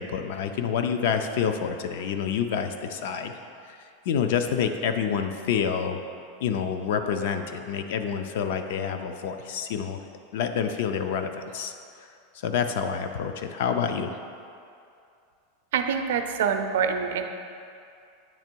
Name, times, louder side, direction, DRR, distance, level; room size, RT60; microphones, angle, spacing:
voice 1, 0.0-3.4 3.6-6.0 6.4-10.0 10.3-11.7 12.0-12.1 12.3-14.1, left 7 dB, 55° left, 7 dB, 0.4 m, -28 dB
voice 2, 15.7-17.2, right 7 dB, 75° right, 6 dB, 0.4 m, -25 dB
8.7 x 3.0 x 4.5 m, 2.5 s
supercardioid pair, 175°, 0 cm